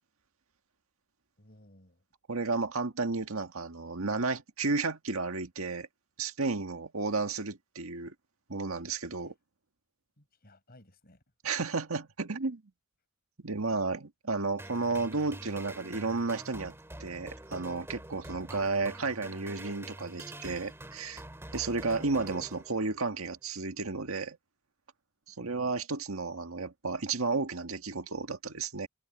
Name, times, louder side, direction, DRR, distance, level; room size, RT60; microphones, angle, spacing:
voice 1, 1.4-2.0 9.2-9.3 10.2-11.2 25.4-25.8, left 1 dB, 45° left, 6.1 m, -59 dB
voice 2, 2.3-5.9 6.2-8.1 8.5-9.3 11.4-12.6 13.4-16.7 17.0-21.2 21.5-24.4 25.3-28.9, right 3 dB, 85° right, 1.7 m, -32 dB
sound 1, 14.6-23.1, right 1 dB, 10° right, 2.2 m, -46 dB
head